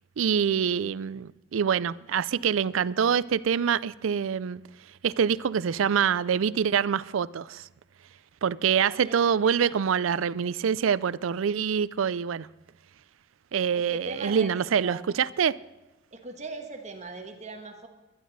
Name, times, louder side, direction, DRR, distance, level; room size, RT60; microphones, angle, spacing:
voice 1, 0.2-4.6 5.0-7.7 8.4-12.5 13.5-15.6, right 7 dB, 90° right, 0.4 m, -25 dB
voice 2, 8.7-9.2 9.4-9.9 13.7-15.0 16.1-17.9, right 2 dB, 35° right, 1.3 m, -40 dB
21.5 x 11.0 x 4.0 m
head